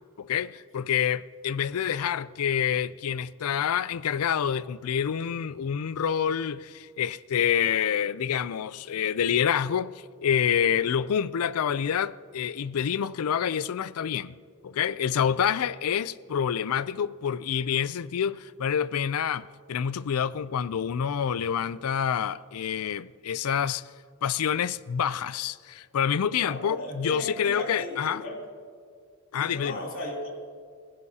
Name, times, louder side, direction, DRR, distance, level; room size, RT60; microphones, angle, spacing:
voice 1, 0.2-9.9 10.2-14.4 14.6-23.8 24.2-28.2 29.3-29.8, left 8 dB, 90° left, 0.4 m, -27 dB
voice 2, 26.3-28.4 29.3-30.3, left 1 dB, 65° left, 3.4 m, -36 dB
29.5 x 16.5 x 2.8 m
head